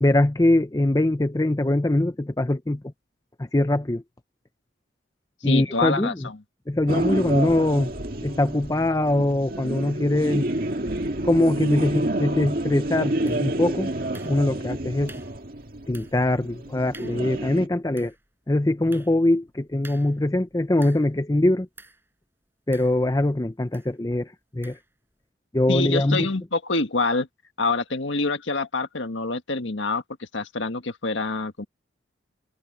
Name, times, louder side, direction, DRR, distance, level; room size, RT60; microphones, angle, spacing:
voice 1, 0.0-2.8 3.4-4.0 5.4-6.3 6.7-7.9 8.2-10.5 11.2-13.9 14.3-15.1 15.9-18.1 18.5-21.7 22.7-24.8 25.5-26.3, left 1 dB, 20° left, 0.5 m, -22 dB
voice 2, 5.4-6.4 25.7-27.3 27.6-31.6, left 3 dB, 75° left, 1.6 m, -26 dB
sound 1, 6.9-17.7, right 1 dB, 50° right, 2.0 m, -29 dB
sound 2, 13.3-13.7 14.1-14.7 15.1-15.5 15.9-16.3 16.6-16.7 16.9-17.3 17.8-21.2 21.8-22.1 22.7-23.3 23.7-24.0 24.6-24.9, right 3 dB, 10° right, 7.1 m, -50 dB
head